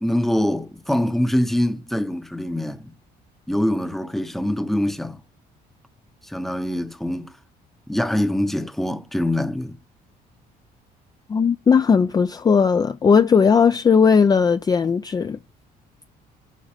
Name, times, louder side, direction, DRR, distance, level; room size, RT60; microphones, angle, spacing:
voice 1, 0.0-2.9 3.5-5.2 6.2-7.4 7.9-9.8, left 1 dB, ahead, 0.8 m, -24 dB
voice 2, 11.3-15.4, left 6 dB, 25° left, 0.4 m, -17 dB
11.5 x 3.9 x 4.9 m
cardioid pair, 110°, 17 cm